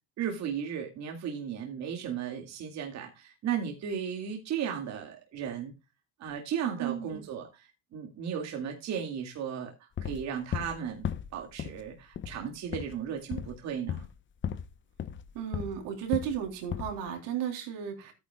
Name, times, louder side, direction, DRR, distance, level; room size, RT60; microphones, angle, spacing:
voice 1, 0.2-5.7 6.2-7.7 7.9-9.7 10.0-11.1 11.3-14.0, right 8 dB, 55° right, 3 dB, 2.2 m, -35 dB
voice 2, 6.8-7.2 15.3-18.1, right 9 dB, 85° right, 2 dB, 3.6 m, -34 dB
sound 1, 10.0-10.8 11.0-11.8 12.1-12.4 12.7-13.0 13.3-13.6 13.9-14.2 14.4-14.7 15.0-15.8 16.1-16.4 16.7-17.0, left 9 dB, 35° left, 0.8 m, -35 dB
14.0 x 9.5 x 2.3 m, 0.25 s
cardioid pair, 115°, 33 cm